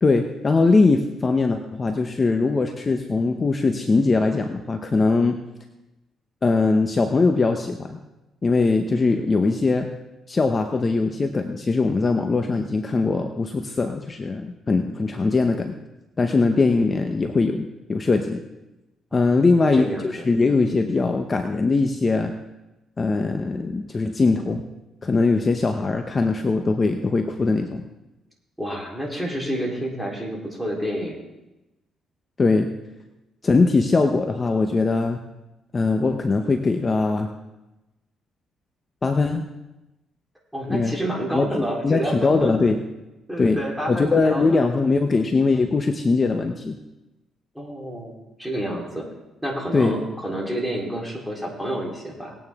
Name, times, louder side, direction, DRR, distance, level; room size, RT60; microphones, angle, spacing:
voice 1, 0.0-5.4 6.4-8.0 8.4-9.9 10.3-15.8 16.2-18.4 19.1-22.3 23.0-24.6 25.0-27.8 32.4-32.7 33.4-35.2 35.7-37.3 39.0-39.4 40.7-41.0 41.3-41.5 41.8-42.8 43.4-43.6 43.9-46.8 49.7-49.9, left 3 dB, 30° left, 5 dB, 0.8 m, -21 dB
voice 2, 19.1-20.3 28.6-31.2 40.5-42.5 43.3-44.7 47.5-49.1 49.4-52.3, right 1 dB, 5° right, -2 dB, 3.6 m, -29 dB
19.5 x 9.1 x 3.6 m, 1.0 s
cardioid pair, 90°, 0 cm